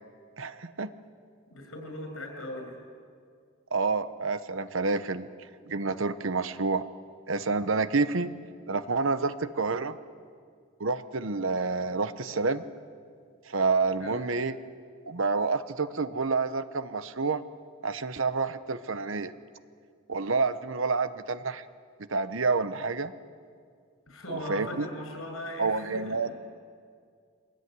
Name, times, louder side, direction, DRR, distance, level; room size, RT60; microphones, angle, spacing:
voice 1, 0.4-0.9 3.7-5.3 5.6-6.8 7.3-8.3 8.7-10.0 10.8-12.6 13.5-14.6 15.1-17.4 17.8-19.3 20.1-21.6 22.1-23.1 24.3-24.9 25.6-26.3, right 4 dB, 65° right, 12 dB, 1.0 m, -28 dB
voice 2, 1.5-2.8 14.0-14.2 24.1-26.3, left 1 dB, 75° left, 3 dB, 7.7 m, -39 dB
24.5 x 20.0 x 9.6 m, 2.1 s
head